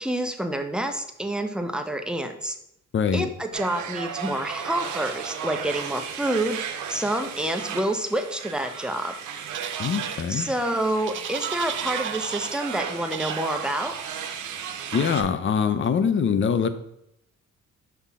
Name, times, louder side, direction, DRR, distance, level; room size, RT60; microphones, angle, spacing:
voice 1, 0.0-2.6 3.1-6.6 6.9-9.1 10.3-13.9, right 1 dB, 5° right, 5 dB, 0.8 m, -28 dB
voice 2, 2.9-3.3 9.8-10.5 14.9-16.7, left 6 dB, 40° left, 12 dB, 0.6 m, -23 dB
sound 1, 3.5-15.2, right 7 dB, 80° right, 0.9 m, -34 dB
sound 2, 9.5-10.2 11.1-12.6 13.1-13.5, right 9 dB, 40° right, 0.5 m, -34 dB
5.7 x 5.5 x 3.6 m, 0.80 s
cardioid pair, 90°, 30 cm